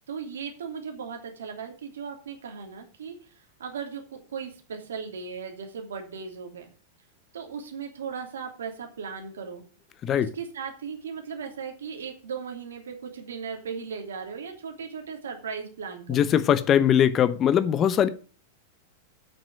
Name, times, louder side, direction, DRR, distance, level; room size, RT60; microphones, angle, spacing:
voice 1, 0.1-3.2 3.6-6.7 7.3-9.6 10.1-16.3, right 6 dB, 70° right, 2.9 m, -37 dB
voice 2, 16.1-18.1, left 9 dB, 30° left, 0.9 m, -21 dB
8.6 x 6.3 x 7.6 m
figure-of-eight pair, 95°, 0 cm